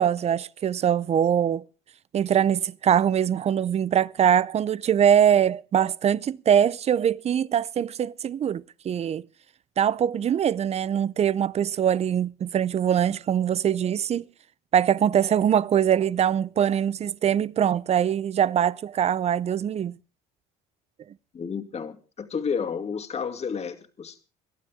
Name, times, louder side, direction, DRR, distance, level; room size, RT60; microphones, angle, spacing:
voice 1, 0.0-1.6 2.1-9.2 9.8-14.2 14.7-20.0, right 9 dB, 35° right, 0.6 m, -23 dB
voice 2, 21.3-24.2, left 6 dB, 35° left, 2.5 m, -31 dB
23.0 x 12.0 x 3.6 m
supercardioid pair, 80°, 18 cm